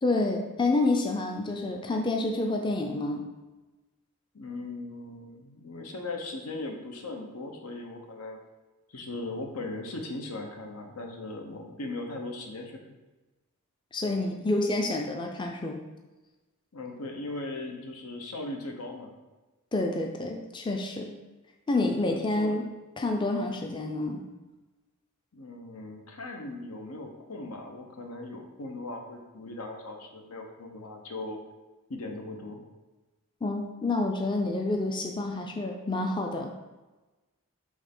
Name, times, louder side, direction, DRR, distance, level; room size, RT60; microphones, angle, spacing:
voice 1, 0.0-3.3 13.9-15.8 19.7-21.1 21.7-22.7 23.0-24.2 33.4-36.5, left 2 dB, 20° left, 2 dB, 0.4 m, -28 dB
voice 2, 4.3-8.4 8.9-12.9 16.7-19.1 22.1-22.6 25.3-31.4 31.9-32.6, left 2 dB, 85° left, 3 dB, 1.0 m, -38 dB
6.3 x 3.3 x 5.4 m, 1.1 s
head